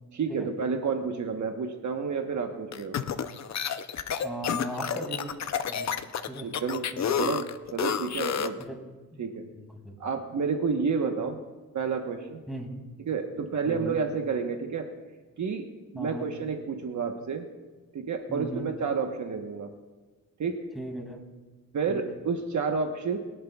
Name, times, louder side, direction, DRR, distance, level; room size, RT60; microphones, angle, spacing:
voice 1, 0.1-3.0 6.4-6.9 7.1-8.6 9.2-9.4 10.0-11.4 11.7-12.4 13.1-14.9 15.4-17.5 17.9-19.7 20.4-20.6 21.7-23.2, right 5 dB, 55° right, 4 dB, 1.1 m, -30 dB
sound 1, 2.7-8.6, left 8 dB, 50° left, 0.6 m, -30 dB
voice 2, 4.2-5.4 5.7-5.9 6.3-6.5 6.9-7.3 8.6-8.8 9.1-10.0 12.5-12.8 13.6-14.0 15.9-16.3 18.3-18.7 20.7-21.2 21.9-22.0, right 1 dB, ahead, 0 dB, 2.3 m, -38 dB
22.0 x 11.5 x 2.3 m, 1.3 s
wide cardioid pair, 140°, 35 cm